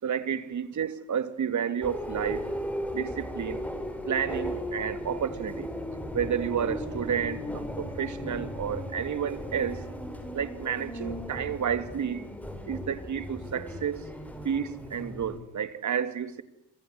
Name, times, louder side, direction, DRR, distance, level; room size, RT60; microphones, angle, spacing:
voice 1, 0.0-2.5 2.9-3.6 4.1-5.7 6.1-9.8 10.3-12.3 12.7-14.1 14.4-16.4, right 8 dB, 50° right, 2.8 m, -31 dB
sound 1, 1.8-15.4, equal, 5° left, 7.7 m, -36 dB
28.0 x 25.5 x 8.1 m
supercardioid pair, 75°, 38 cm